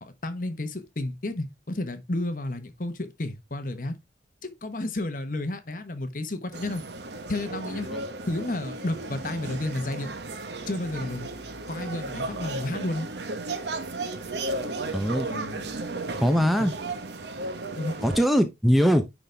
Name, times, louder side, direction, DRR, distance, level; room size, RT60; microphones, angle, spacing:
voice 1, 0.0-3.9 4.4-6.8 7.3-7.9 8.3-10.1 10.7-11.3 11.7-13.1 15.3-15.7 17.7-17.9, left 2 dB, 50° left, 1.1 m, -31 dB
sound 1, 6.5-18.3, right 2 dB, 75° right, 1.0 m, -34 dB
voice 2, 14.9-15.3 16.2-16.7 18.0-19.0, equal, ahead, 0.6 m, -21 dB
10.0 x 4.0 x 3.3 m
head